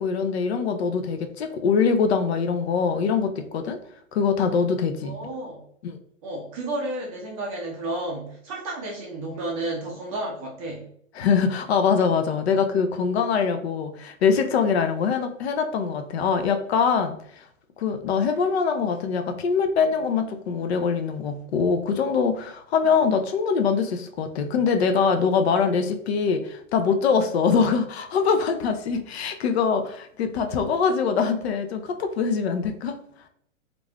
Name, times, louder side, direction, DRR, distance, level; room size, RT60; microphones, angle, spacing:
voice 1, 0.0-3.8 4.1-5.1 5.8-6.0 11.2-17.4 17.8-33.0, left 5 dB, 55° left, 7 dB, 0.5 m, -23 dB
voice 2, 5.0-5.6 6.2-10.9 18.3-18.4 27.5-27.6, right 2 dB, 25° right, -2 dB, 0.5 m, -32 dB
3.1 x 2.5 x 2.2 m, 0.67 s
hypercardioid pair, 120°, 40 cm